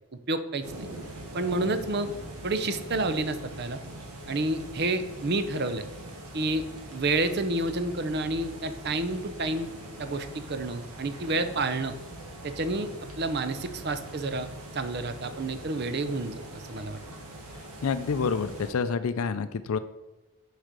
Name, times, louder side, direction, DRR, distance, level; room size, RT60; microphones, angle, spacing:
voice 1, 0.3-0.9 1.3-2.1 2.4-3.8 4.3-5.9 6.3-9.7 10.0-12.0 12.4-12.9 13.2-14.5 14.7-17.0, right 2 dB, 45° right, 10 dB, 0.6 m, -29 dB
sound 1, 0.6-18.7, right 1 dB, 85° right, 1.7 m, -42 dB
voice 2, 17.8-19.8, left 5 dB, 70° left, 11 dB, 0.4 m, -28 dB
6.3 x 4.9 x 6.7 m, 1.1 s
head